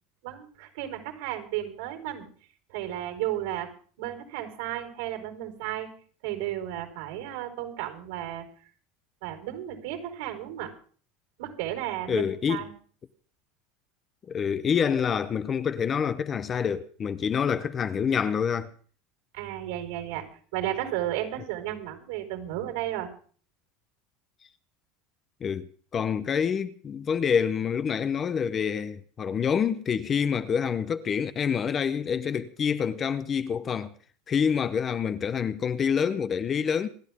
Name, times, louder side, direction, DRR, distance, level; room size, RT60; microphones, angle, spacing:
voice 1, 0.2-2.3 2.7-3.7 4.0-5.9 6.2-8.5 9.2-10.7 11.4-12.2 12.5-12.7 19.3-23.1, right 13 dB, 75° right, 4.6 m, -33 dB
voice 2, 12.1-12.6 14.3-18.7 25.4-33.9 34.3-36.9, left 7 dB, 20° left, 0.7 m, -27 dB
27.5 x 11.5 x 3.6 m
cardioid pair, 170°, 0 cm